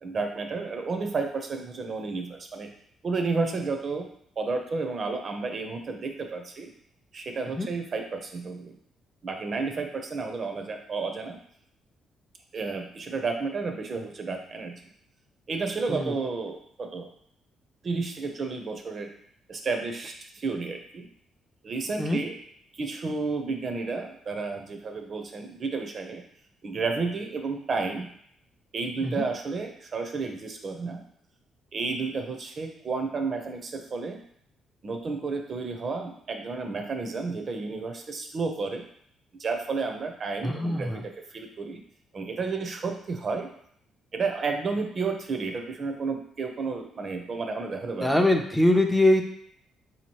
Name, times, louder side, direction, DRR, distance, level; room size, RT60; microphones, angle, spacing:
voice 1, 0.0-2.7 3.0-4.1 4.4-6.7 7.1-8.8 9.2-11.4 12.5-14.8 15.5-17.1 17.8-19.1 19.5-21.1 21.6-22.4 22.7-26.2 26.6-28.1 28.7-31.0 31.7-34.2 34.8-38.9 39.4-41.8 42.1-43.5 44.1-48.3, right 4 dB, 45° right, 4 dB, 0.5 m, -31 dB
voice 2, 40.4-41.0 48.0-49.2, left 1 dB, 5° left, 3 dB, 0.4 m, -23 dB
3.8 x 2.8 x 3.0 m, 0.67 s
cardioid pair, 90°, 0 cm